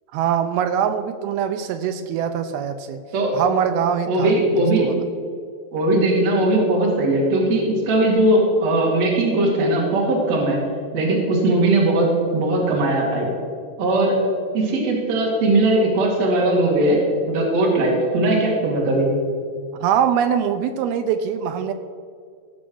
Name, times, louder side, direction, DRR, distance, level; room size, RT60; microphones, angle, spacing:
voice 1, 0.1-3.0 3.3-4.3 4.6-5.0 19.8-21.7, right 8 dB, 85° right, 8 dB, 2.2 m, -23 dB
voice 2, 4.1-4.9 5.7-10.6 10.9-12.1 12.3-13.3 13.8-14.2 14.5-17.0 17.3-19.1, right 2 dB, 45° right, -2 dB, 3.1 m, -19 dB
16.5 x 6.1 x 6.3 m, 2.2 s
omnidirectional pair, 4.9 m